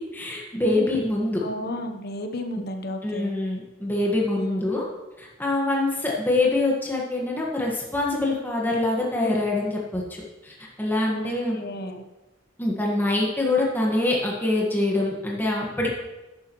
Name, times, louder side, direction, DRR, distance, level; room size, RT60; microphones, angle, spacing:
voice 1, 0.1-1.4 3.0-4.8 5.2-10.0 10.4-11.6 12.6-15.9, left 2 dB, 10° left, -3 dB, 1.5 m, -24 dB
voice 2, 1.4-3.3 4.4-4.7 11.1-12.0, left 1 dB, 55° left, 5 dB, 1.0 m, -33 dB
12.0 x 10.0 x 3.1 m, 1.1 s
head